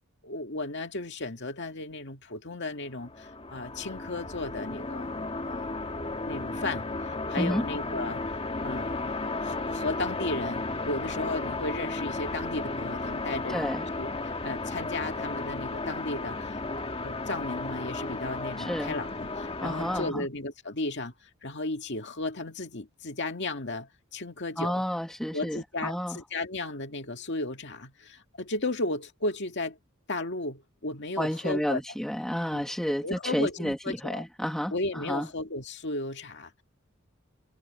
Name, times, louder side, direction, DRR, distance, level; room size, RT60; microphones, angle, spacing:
voice 1, 0.2-5.1 5.5-5.7 6.3-6.9 7.3-8.2 8.6-9.1 9.4-13.7 14.0-16.6 17.0-24.8 25.3-29.8 30.1-31.8 32.5-32.6 33.0-34.2 34.7-36.6, left 2 dB, 55° left, 2.1 m, -34 dB
sound 1, 2.9-20.1, left 2 dB, 30° left, 1.8 m, -34 dB
voice 2, 13.5-13.8 18.6-18.9 19.6-20.2 24.6-26.2 31.2-33.8 34.0-35.3, equal, 5° left, 0.9 m, -30 dB
head